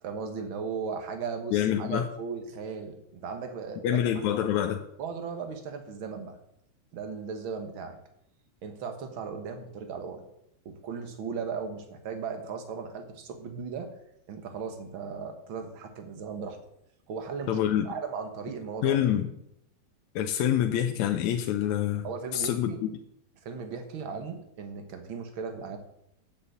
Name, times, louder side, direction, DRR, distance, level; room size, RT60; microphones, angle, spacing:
voice 1, 0.0-4.3 5.0-6.4 6.9-8.0 8.6-10.2 10.7-13.9 14.3-16.6 17.1-17.6 17.8-19.0 22.0-22.8 23.4-25.8, right 5 dB, 50° right, 6 dB, 1.8 m, -37 dB
voice 2, 1.5-2.1 3.8-4.8 17.5-17.9 18.8-19.3 20.2-22.1 22.3-22.9, left 10 dB, 75° left, 5 dB, 2.0 m, -26 dB
8.6 x 6.9 x 7.9 m, 0.77 s
omnidirectional pair, 3.4 m